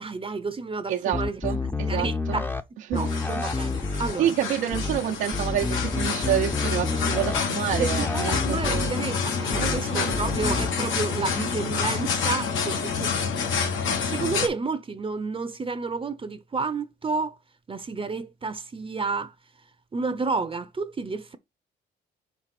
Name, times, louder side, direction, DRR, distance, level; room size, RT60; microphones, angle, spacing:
voice 1, 0.0-1.4 1.8-2.5 2.9-4.3 7.8-13.1 14.1-17.4 17.7-19.3 19.9-21.4, right 4 dB, 25° right, 0.7 m, -31 dB
voice 2, 0.9-2.4 2.9-3.1 4.2-8.9 9.6-10.2, right 10 dB, 90° right, 0.9 m, -28 dB
sound 1, 1.1-2.6 2.9-4.1 4.7-5.0 5.3-7.4 7.7-8.9 9.5-9.8 10.1-10.7, left 3 dB, 10° left, 0.7 m, -29 dB
sound 2, 2.9-14.5, left 5 dB, 80° left, 1.5 m, -28 dB
4.7 x 4.6 x 5.9 m
cardioid pair, 90°, 20 cm